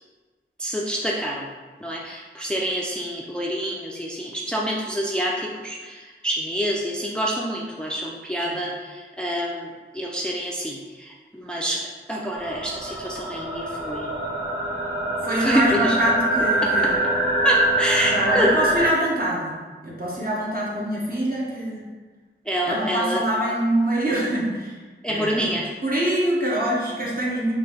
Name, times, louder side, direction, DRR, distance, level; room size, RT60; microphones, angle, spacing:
voice 1, 0.6-1.5 1.8-9.7 9.9-11.8 12.1-14.1 15.4-16.0 17.4-18.5 22.5-23.2 25.0-25.7, equal, 5° left, -3 dB, 0.5 m, -27 dB
sound 1, 12.4-18.9, right 1 dB, 75° right, 1.2 m, -24 dB
voice 2, 15.2-17.0 18.0-19.5 19.8-21.8 22.6-24.7 25.1-25.5 25.8-27.5, right 1 dB, 45° right, -6 dB, 1.4 m, -24 dB
4.3 x 2.8 x 4.1 m, 1.4 s
wide cardioid pair, 55°, 21 cm